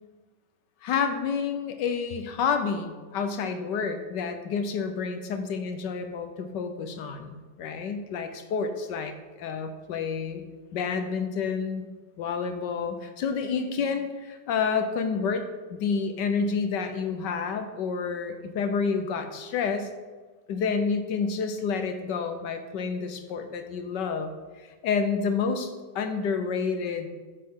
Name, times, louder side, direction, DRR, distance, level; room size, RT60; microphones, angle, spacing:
voice 1, 0.8-9.1 9.4-10.4 10.7-11.8 12.2-19.9 20.5-24.3 24.8-27.1, left 5 dB, 70° left, 7 dB, 1.4 m, -29 dB
9.6 x 7.7 x 3.7 m, 1.4 s
omnidirectional pair, 2.1 m